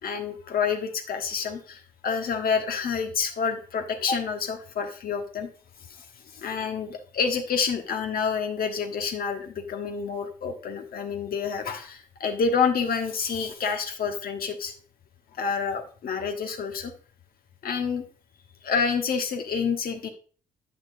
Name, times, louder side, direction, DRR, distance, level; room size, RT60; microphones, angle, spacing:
voice 1, 0.0-5.5 5.9-6.0 6.3-14.8 15.4-16.9 17.6-18.0 18.6-20.1, left 6 dB, 55° left, 5 dB, 1.3 m, -28 dB
9.1 x 5.8 x 2.6 m, 0.41 s
hypercardioid pair, 45°, 19 cm